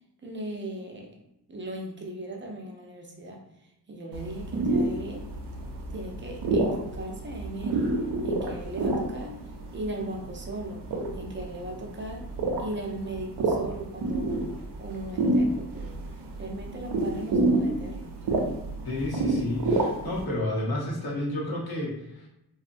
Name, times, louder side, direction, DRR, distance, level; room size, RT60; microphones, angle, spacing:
voice 1, 0.2-1.1 1.5-3.4 3.9-5.3 5.9-7.9 8.2-9.4 9.7-10.9 11.1-12.3 12.6-14.4 14.8-16.0 16.4-18.2, right 1 dB, 30° right, 1 dB, 0.6 m, -37 dB
sound 1, 4.1-20.2, right 2 dB, 80° right, 0.6 m, -29 dB
voice 2, 18.8-22.3, left 1 dB, 65° left, -4 dB, 0.8 m, -31 dB
2.6 x 2.1 x 2.6 m, 0.87 s
cardioid pair, 75°, 40 cm